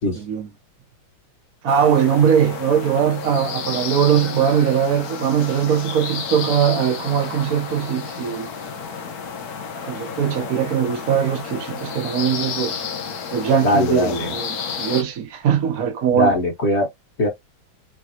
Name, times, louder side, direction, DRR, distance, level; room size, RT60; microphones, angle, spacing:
voice 1, 0.2-0.5 1.6-8.5 9.8-12.8 13.3-16.3, right 8 dB, 55° right, 1.1 m, -20 dB
sound 1, 1.7-15.0, left 6 dB, 55° left, 1.2 m, -31 dB
voice 2, 13.6-14.3 16.1-16.9 17.2-17.3, left 1 dB, 35° left, 1.5 m, -20 dB
5.0 x 3.6 x 2.8 m
omnidirectional pair, 2.3 m